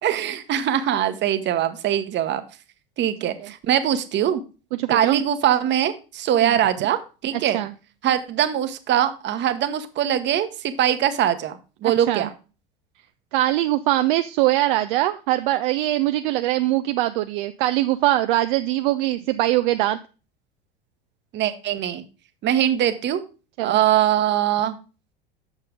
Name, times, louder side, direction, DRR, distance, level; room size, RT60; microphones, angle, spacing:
voice 1, 0.0-2.4 3.0-4.4 4.9-7.6 8.0-12.3 21.3-22.0 22.4-23.2 23.6-24.7, right 11 dB, 40° right, 10 dB, 1.0 m, -22 dB
voice 2, 4.8-5.2 6.4-6.6 7.3-7.7 12.1-12.3 13.3-20.0 23.6-23.8, right 15 dB, 60° right, 10 dB, 0.5 m, -22 dB
8.1 x 6.6 x 3.6 m, 0.33 s
hypercardioid pair, 75°, 29 cm